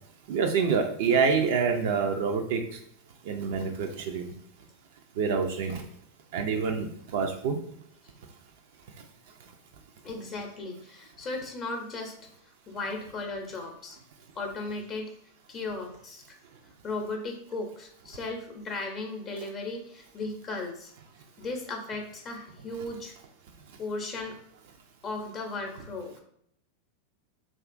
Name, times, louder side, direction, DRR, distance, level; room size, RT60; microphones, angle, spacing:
voice 1, 0.3-2.6 3.3-4.3 5.2-5.8 6.3-7.6, right 5 dB, 65° right, 4 dB, 0.3 m, -26 dB
voice 2, 10.0-12.1 12.7-14.0 14.3-15.1 15.5-16.4 16.8-20.9 21.4-23.1 23.8-24.4 25.0-26.2, left 3 dB, 35° left, 2 dB, 0.5 m, -36 dB
2.9 x 2.3 x 2.5 m, 0.69 s
hypercardioid pair, 95°, 0 cm